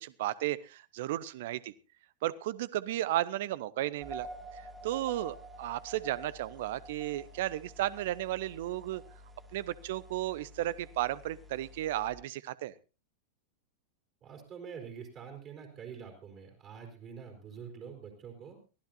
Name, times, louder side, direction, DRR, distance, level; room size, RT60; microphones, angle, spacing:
voice 1, 0.0-1.7 2.2-4.3 4.5-9.0 9.5-12.7, right 14 dB, 55° right, 19 dB, 0.8 m, -34 dB
sound 1, 4.0-12.1, right 2 dB, 10° right, 2.4 m, -49 dB
voice 2, 14.2-18.6, right 7 dB, 35° right, 2 dB, 4.1 m, -46 dB
23.0 x 15.5 x 2.7 m, 0.33 s
figure-of-eight pair, 90°, 0 cm